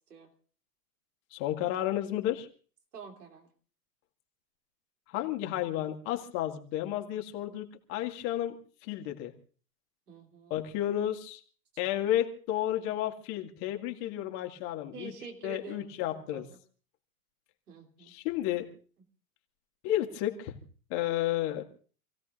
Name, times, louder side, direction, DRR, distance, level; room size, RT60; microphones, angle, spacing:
voice 1, 1.3-2.5 5.1-8.6 8.8-9.3 10.5-11.4 11.8-15.1 15.4-16.4 18.1-18.7 19.8-20.5 20.9-21.6, left 12 dB, 45° left, 4 dB, 2.2 m, -32 dB
voice 2, 2.9-3.5 10.1-10.6 14.9-16.6 17.7-18.1, right 5 dB, 80° right, 2 dB, 3.4 m, -47 dB
28.0 x 16.5 x 2.6 m, 0.41 s
hypercardioid pair, 100°, 46 cm